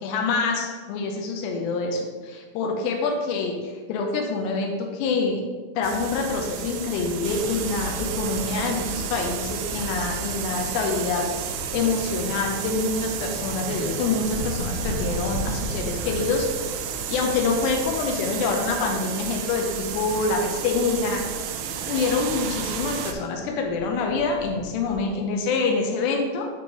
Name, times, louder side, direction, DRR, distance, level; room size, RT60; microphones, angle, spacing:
voice 1, 0.0-5.4 5.8-16.7 17.1-21.2 21.9-26.5, left 4 dB, 90° left, 1 dB, 2.4 m, -26 dB
sound 1, 5.8-23.1, right 7 dB, 85° right, 3.1 m, -32 dB
sound 2, 11.2-21.0 21.9-25.1, right 1 dB, 70° left, 2.7 m, -38 dB
8.0 x 3.1 x 5.2 m, 1.5 s
omnidirectional pair, 5.7 m